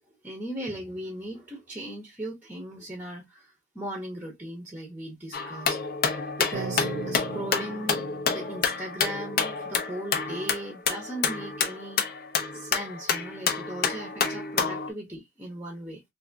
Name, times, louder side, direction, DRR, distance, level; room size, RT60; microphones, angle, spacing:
voice 1, 0.2-5.8 6.4-12.0 12.5-16.0, right 1 dB, 10° right, 0.7 m, -38 dB
sound 1, 5.3-14.9, left 5 dB, 50° left, 0.5 m, -29 dB
sound 2, 6.5-10.7, right 4 dB, 75° right, 0.7 m, -40 dB
3.4 x 2.5 x 2.6 m
head